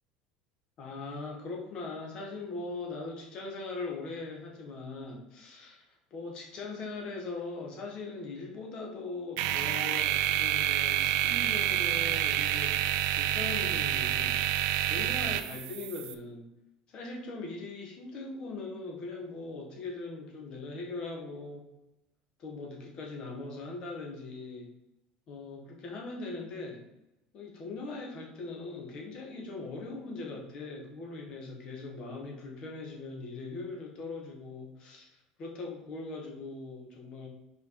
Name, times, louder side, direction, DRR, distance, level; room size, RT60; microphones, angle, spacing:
voice 1, 0.8-12.7 13.2-14.5 14.9-16.5 16.9-21.6 22.4-24.7 25.3-26.8 27.3-37.3, left 3 dB, 40° left, 1 dB, 1.7 m, -40 dB
sound 1, 9.4-16.1, right 13 dB, 70° right, 0.5 m, -28 dB
5.5 x 4.7 x 4.8 m, 0.94 s
cardioid pair, 165°, 2 cm